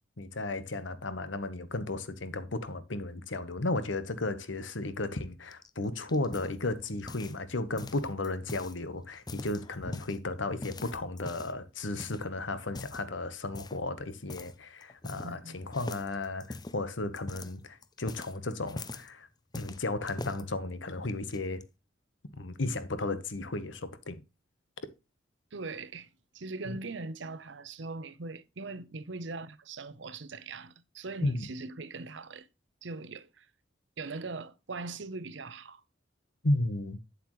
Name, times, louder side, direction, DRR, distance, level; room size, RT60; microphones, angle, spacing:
voice 1, 0.2-19.3 19.5-21.6 22.4-24.2 26.7-26.8 31.2-31.4 36.4-37.0, left 2 dB, 85° left, 1.2 m, -34 dB
sound 1, 5.5-7.5 7.8-8.8 9.1-10.2 10.6-11.6 12.0-12.3 12.7-13.1 13.5-13.9 14.3-14.5 14.8-15.5 15.7-19.1 19.5-20.4 21.1-21.6, left 2 dB, 20° left, 0.5 m, -42 dB
voice 2, 15.2-15.6 25.5-26.1 26.3-32.5 32.8-33.5 34.0-35.8, right 3 dB, 75° right, 0.8 m, -41 dB
8.6 x 7.9 x 3.1 m
head